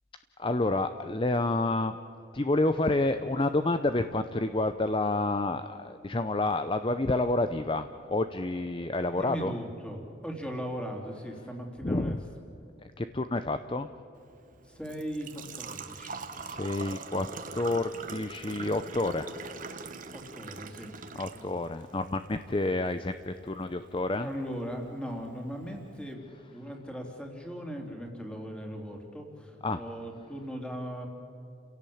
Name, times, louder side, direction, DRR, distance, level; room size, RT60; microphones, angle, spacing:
voice 1, 0.4-2.0 2.3-9.5 11.8-12.2 13.0-13.9 16.3-17.3 17.5-19.3 21.1-24.3 29.6-29.8, left 2 dB, 25° left, 9 dB, 0.6 m, -29 dB
voice 2, 9.1-12.2 14.6-16.2 20.1-21.0 21.3-21.5 24.2-26.2 26.5-31.1, equal, 5° left, 1 dB, 3.2 m, -38 dB
Engine / Trickle dribble / Fill (with liquid), 14.2-26.1, right 4 dB, 45° right, 1.3 m, -44 dB
30.0 x 17.0 x 8.7 m, 2.8 s
head